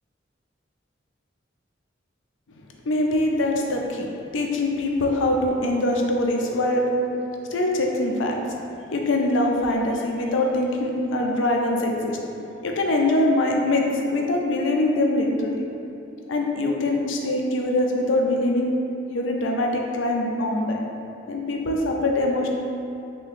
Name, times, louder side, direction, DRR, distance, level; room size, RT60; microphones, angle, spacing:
voice 1, 2.9-6.8 7.5-8.4 8.9-12.2 12.6-13.9 14.1-15.6 16.3-18.7 19.1-20.8 21.3-22.5, left 1 dB, 80° left, 0 dB, 0.4 m, -23 dB
3.3 x 2.7 x 3.4 m, 2.7 s
head